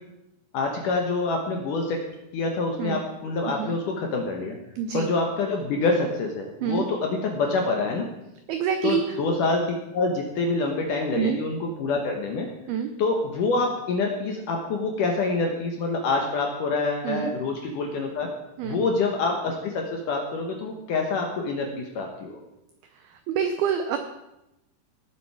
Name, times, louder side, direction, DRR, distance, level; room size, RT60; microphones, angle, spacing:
voice 1, 0.5-2.0 2.3-4.6 4.9-8.1 8.8-9.6 9.9-12.5 13.0-18.3 18.6-22.4, left 3 dB, 75° left, 2 dB, 2.0 m, -26 dB
voice 2, 4.8-5.1 6.6-6.9 8.5-9.0 11.2-11.4 12.7-12.9 17.0-17.3 18.6-18.8 23.1-24.0, right 8 dB, 85° right, 7 dB, 2.2 m, -26 dB
18.5 x 7.3 x 4.7 m, 0.90 s
omnidirectional pair, 5.3 m